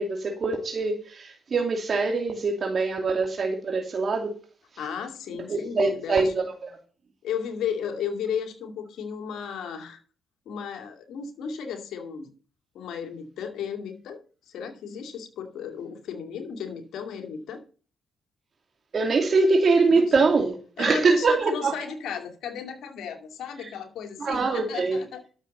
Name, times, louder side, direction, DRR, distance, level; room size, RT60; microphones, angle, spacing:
voice 1, 0.0-4.4 5.5-6.5 18.9-21.7 23.6-23.7 24.2-25.0, right 3 dB, 50° right, 2.5 m, -23 dB
voice 2, 4.8-6.3 7.2-10.0 10.5-12.3 12.7-14.2 14.5-17.6 19.9-20.1 20.8-25.2, left 7 dB, 75° left, 2.5 m, -34 dB
12.5 x 7.3 x 5.4 m
supercardioid pair, 55°, 0 cm